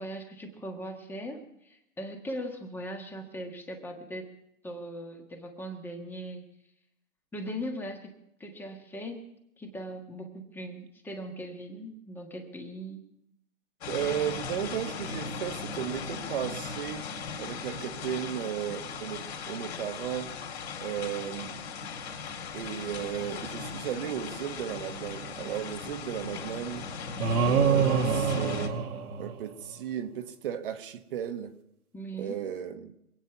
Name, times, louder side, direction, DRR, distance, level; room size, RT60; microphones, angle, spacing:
voice 1, 0.0-4.3 4.6-6.4 7.3-8.1 8.4-13.0 31.9-32.4, equal, 5° left, 3 dB, 1.5 m, -39 dB
sound 1, 13.8-28.7, left 5 dB, 45° left, 3.7 m, -38 dB
voice 2, 13.9-17.1 17.4-20.3 20.8-21.6 22.5-26.9 27.4-28.8 29.2-31.5 32.2-32.9, right 10 dB, 40° right, 8 dB, 1.4 m, -35 dB
sound 2, 27.2-29.7, right 6 dB, 80° right, 1.7 m, -26 dB
26.0 x 9.2 x 5.9 m, 0.81 s
hypercardioid pair, 150°, 42 cm